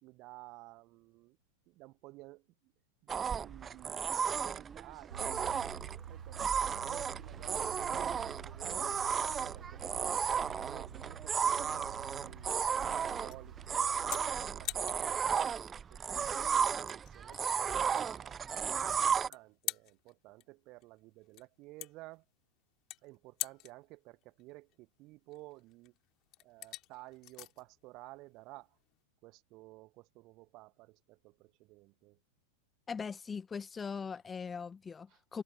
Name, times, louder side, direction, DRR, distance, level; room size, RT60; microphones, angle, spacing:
voice 1, 0.0-1.4 1.7-2.7 3.0-5.6 6.1-10.2 10.6-15.6 15.9-18.5 18.8-22.2 23.0-25.9 26.4-28.8 29.2-32.2 35.1-35.2, right 21 dB, 40° right, 1.3 m, -54 dB
sound 1, 3.1-19.3, right 7 dB, 20° right, 0.7 m, -34 dB
sound 2, 5.1-15.3, right 9 dB, 65° right, 1.6 m, -49 dB
sound 3, 10.2-29.0, left 18 dB, 40° left, 2.9 m, -47 dB
voice 2, 32.9-35.4, left 5 dB, 15° left, 1.1 m, -40 dB
figure-of-eight pair, 90°, 0 cm